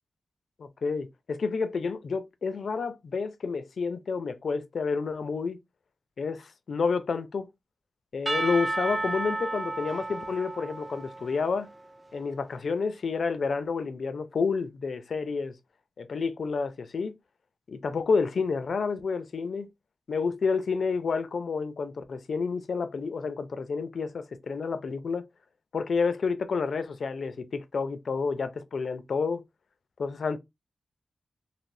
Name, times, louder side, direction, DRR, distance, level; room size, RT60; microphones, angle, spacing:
voice 1, 0.6-5.6 6.2-7.5 8.1-11.7 12.1-15.6 16.0-17.1 17.7-19.7 20.1-25.3 25.7-29.4 30.0-30.4, left 5 dB, 65° left, 0.4 m, -29 dB
Percussion / Church bell, 8.3-12.1, right 2 dB, 15° right, 0.4 m, -33 dB
3.3 x 2.6 x 2.6 m
wide cardioid pair, 170°, 0 cm